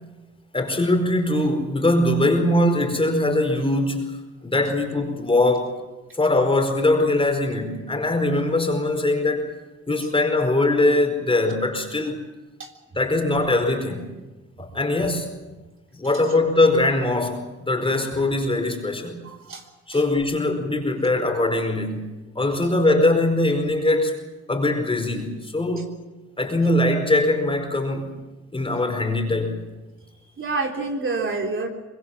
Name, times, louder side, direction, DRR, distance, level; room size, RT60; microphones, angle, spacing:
voice 1, 0.5-5.8 6.1-9.5 9.9-12.2 12.9-14.1 14.6-15.3 15.9-19.2 19.9-22.1 22.3-25.9 26.4-28.1 28.5-29.6, left 2 dB, 20° left, 4 dB, 4.7 m, -22 dB
voice 2, 19.2-19.6 19.9-20.0 30.4-31.7, right 3 dB, 40° right, 2 dB, 3.4 m, -27 dB
24.5 x 21.5 x 7.3 m, 1.2 s
cardioid pair, 90°, 30 cm